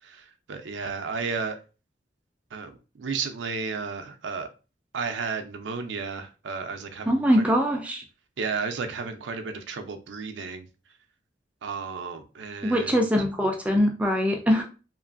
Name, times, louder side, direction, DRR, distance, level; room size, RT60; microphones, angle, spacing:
voice 1, 0.0-1.6 2.5-4.5 4.9-7.1 8.4-10.7 11.6-12.9, right 5 dB, 85° right, 7 dB, 0.4 m, -33 dB
voice 2, 7.1-8.0 12.6-14.6, equal, 10° right, 1 dB, 0.4 m, -22 dB
3.0 x 2.5 x 2.4 m, 0.32 s
head